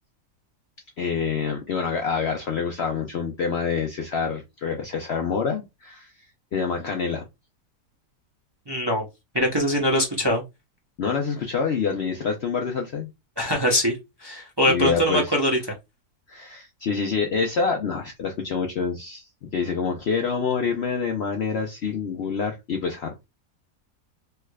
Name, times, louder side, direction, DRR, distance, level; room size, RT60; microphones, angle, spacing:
voice 1, 1.0-6.1 6.5-7.2 11.0-13.1 14.6-15.4 16.3-23.2, left 5 dB, 75° left, 0.6 m, -27 dB
voice 2, 8.7-9.0 9.3-10.4 13.4-15.6, equal, 35° right, 0.3 m, -22 dB
3.4 x 3.1 x 2.3 m
omnidirectional pair, 1.8 m